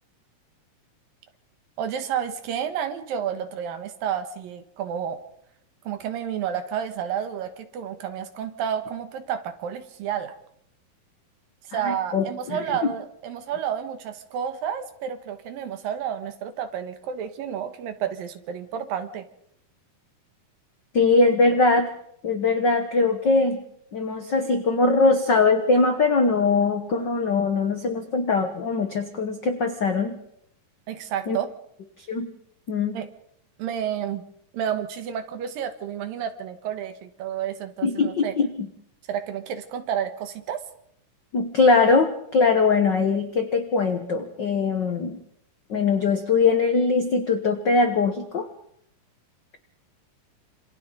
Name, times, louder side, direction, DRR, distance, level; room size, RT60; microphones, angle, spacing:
voice 1, 1.8-5.2 5.8-10.4 11.7-19.3 30.9-31.5 32.9-33.1 33.6-34.2 34.5-38.3 39.1-40.6, right 9 dB, 80° right, 8 dB, 3.2 m, -30 dB
voice 2, 11.7-12.9 20.9-21.9 22.2-23.6 23.9-30.1 31.3-31.4 32.1-32.3 32.7-33.0 37.8-38.5 41.3-45.2 45.7-48.5, left 4 dB, 70° left, 6 dB, 1.0 m, -21 dB
27.0 x 27.0 x 4.0 m, 0.72 s
omnidirectional pair, 4.0 m